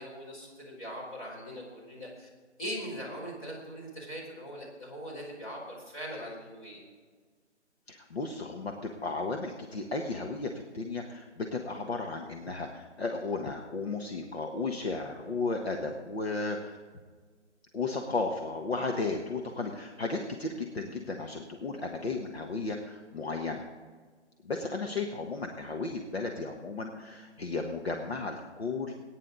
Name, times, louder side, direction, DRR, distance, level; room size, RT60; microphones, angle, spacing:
voice 1, 0.0-2.3 2.6-6.8, equal, 30° left, -4 dB, 4.5 m, -41 dB
voice 2, 7.9-16.8 17.7-23.6 24.4-28.9, left 3 dB, 60° left, 2 dB, 1.4 m, -34 dB
19.5 x 9.8 x 4.0 m, 1.5 s
figure-of-eight pair, 160°, 36 cm